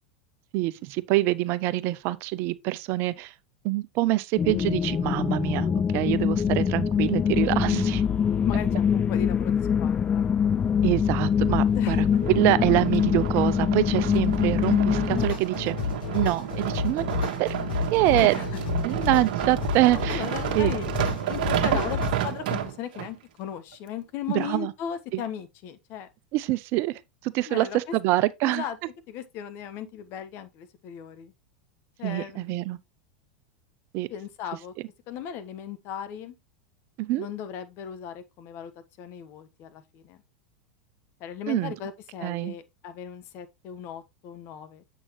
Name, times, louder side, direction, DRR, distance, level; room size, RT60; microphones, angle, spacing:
voice 1, 0.5-3.3 3.6-8.0 10.8-15.8 16.1-17.1 17.4-17.5 17.9-18.3 18.8-20.2 20.5-20.8 21.7-21.8 24.3-24.7 25.1-25.2 26.3-28.6 32.0-32.8 33.9-34.1 37.0-37.3 41.5-41.7 42.2-42.5, right 17 dB, 50° right, 0.5 m, -25 dB
sound 1, 4.4-15.3, left 7 dB, 25° left, 0.4 m, -24 dB
voice 2, 8.4-10.3 11.7-12.0 18.2-18.5 19.9-20.9 21.3-26.1 27.4-27.9 28.4-28.8 29.1-31.3 32.0-32.6 34.1-34.7 35.1-36.4 37.2-38.7 39.0-40.2 41.2-44.8, left 9 dB, 50° left, 1.1 m, -37 dB
sound 2, 12.1-23.1 23.7-23.8, right 12 dB, 65° right, 1.2 m, -31 dB
sound 3, 15.1-22.1, left 6 dB, 80° left, 4.3 m, -31 dB
7.4 x 6.2 x 3.0 m
hypercardioid pair, 100°, 5 cm